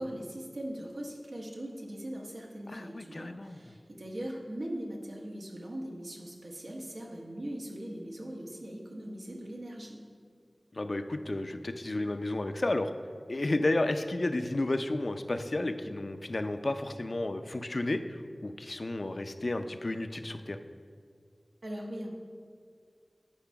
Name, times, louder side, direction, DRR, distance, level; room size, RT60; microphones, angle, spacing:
voice 1, 0.0-10.1 21.6-22.1, right 1 dB, 80° right, -1 dB, 1.3 m, -40 dB
voice 2, 2.7-3.6 10.7-12.9 13.3-20.6, left 2 dB, 60° left, 8 dB, 0.4 m, -32 dB
8.9 x 4.7 x 5.8 m, 2.1 s
wide cardioid pair, 60°, 0 cm